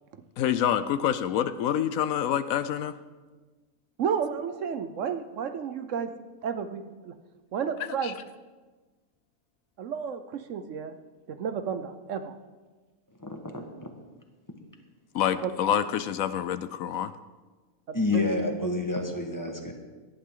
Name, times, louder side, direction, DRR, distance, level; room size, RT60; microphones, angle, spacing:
voice 1, 0.4-3.0 7.8-8.1 15.1-17.1, left 9 dB, 75° left, 13 dB, 1.0 m, -27 dB
voice 2, 4.0-6.1 6.4-7.1 7.5-8.1 9.8-11.0 11.3-12.3 15.4-15.5 17.9-18.3, right 7 dB, 65° right, 9 dB, 1.0 m, -32 dB
voice 3, 13.2-13.6 17.9-19.7, left 2 dB, 15° left, 3 dB, 1.4 m, -28 dB
18.0 x 11.5 x 3.8 m, 1.3 s
omnidirectional pair, 1.5 m